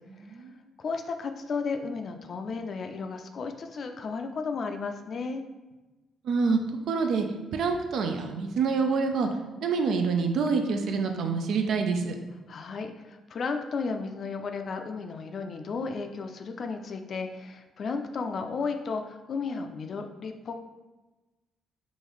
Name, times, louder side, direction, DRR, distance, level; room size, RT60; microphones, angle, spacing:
voice 1, 0.1-0.6 6.2-6.6 6.9-7.3 7.5-9.3 9.6-12.1, right 5 dB, 70° right, 5 dB, 0.4 m, -26 dB
voice 2, 0.8-5.4 12.5-20.6, left 4 dB, 50° left, 6 dB, 0.4 m, -34 dB
3.7 x 2.5 x 3.0 m, 1.1 s
cardioid pair, 90°, 0 cm